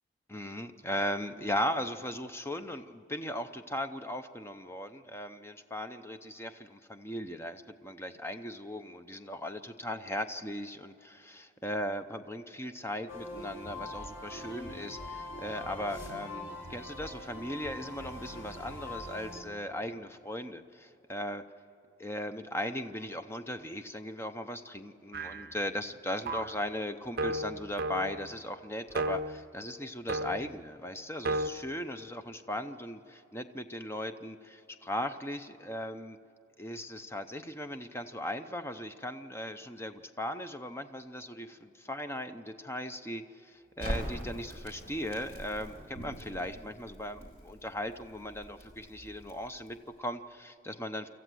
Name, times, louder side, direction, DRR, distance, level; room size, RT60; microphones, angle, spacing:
voice 1, 0.3-21.4 22.0-36.2 36.6-51.1, left 1 dB, 10° left, 9 dB, 0.7 m, -38 dB
sound 1, 13.1-19.4, left 1 dB, 90° left, 5.4 m, -43 dB
sound 2, 25.1-25.6 26.3-26.6 27.2-28.3 28.9-29.4 30.1-30.6 31.3-31.5, right 1 dB, 50° right, 0.8 m, -33 dB
Crackle, 43.8-49.9, equal, 35° left, 4.2 m, -43 dB
26.0 x 14.0 x 7.7 m, 2.8 s
head